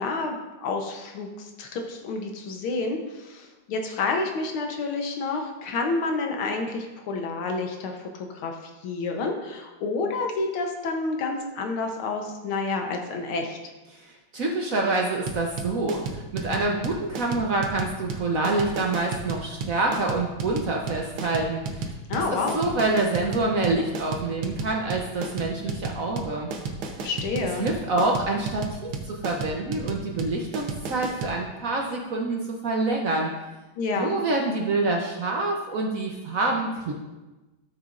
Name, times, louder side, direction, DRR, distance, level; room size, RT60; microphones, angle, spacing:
voice 1, 0.0-13.6 22.1-22.6 27.0-27.7 33.8-34.2, left 3 dB, 85° left, 3 dB, 1.8 m, -29 dB
voice 2, 13.9-26.5 27.6-33.3 34.0-36.9, right 2 dB, 55° right, 0 dB, 1.0 m, -27 dB
sound 1, 15.3-31.4, right 4 dB, 90° right, 1.8 m, -33 dB
13.0 x 7.2 x 2.5 m, 1.1 s
omnidirectional pair, 2.3 m